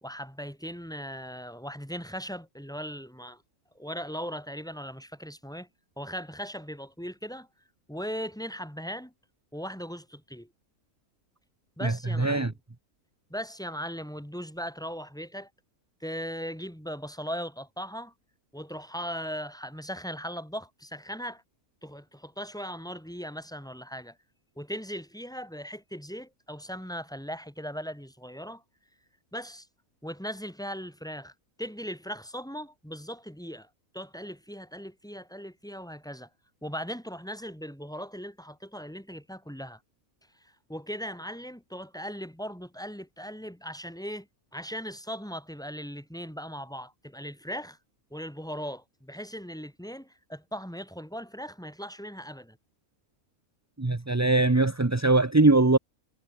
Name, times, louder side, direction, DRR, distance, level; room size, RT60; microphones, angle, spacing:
voice 1, 0.0-3.4 3.8-5.7 6.0-7.5 7.9-9.1 9.5-10.5 11.8-12.5 13.3-15.5 16.0-18.1 18.5-21.4 21.8-24.2 24.6-28.6 29.3-29.7 30.0-31.3 31.6-33.7 33.9-36.3 36.6-39.8 40.4-44.3 44.5-47.8 48.1-52.6, equal, ahead, 3.7 m, -38 dB
voice 2, 11.8-12.5 53.8-55.8, right 2 dB, 15° right, 0.7 m, -22 dB
omnidirectional pair, 1.5 m